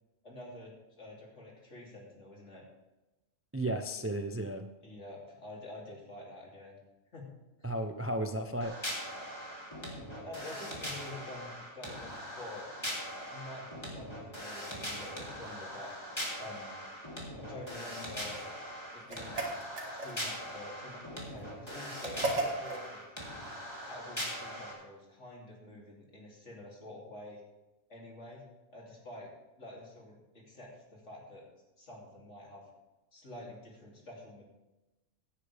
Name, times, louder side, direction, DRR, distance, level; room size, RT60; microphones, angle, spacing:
voice 1, 0.2-0.7 1.0-2.6 4.8-6.8 7.1-7.3 7.6-7.7 10.2-12.9 13.3-15.9 16.4-16.8 17.4-18.4 18.9-19.4 19.9-23.1 23.9-27.4 27.9-28.4 28.7-29.3 29.6-31.5 31.8-32.6 33.1-34.4, left 2 dB, 60° left, -3 dB, 3.3 m, -48 dB
voice 2, 3.5-4.7 7.6-8.8, right 1 dB, 20° right, 7 dB, 0.4 m, -34 dB
sound 1, 8.6-24.7, equal, 20° left, 2.9 m, -41 dB
sound 2, 19.1-20.4 22.0-22.9, right 2 dB, 60° right, 2.3 m, -35 dB
16.5 x 9.9 x 3.5 m, 1.0 s
omnidirectional pair, 1.3 m